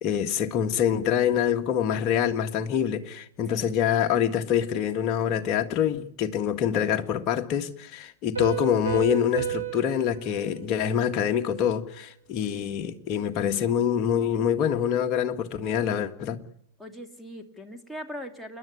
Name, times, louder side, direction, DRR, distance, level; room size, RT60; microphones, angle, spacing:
voice 1, 0.0-16.4, left 9 dB, 40° left, 1.8 m, -25 dB
Piano, 8.4-11.8, right 9 dB, 85° right, 5.0 m, -34 dB
voice 2, 16.8-18.6, equal, ahead, 2.6 m, -40 dB
28.5 x 11.0 x 9.7 m
figure-of-eight pair, 95°, 0 cm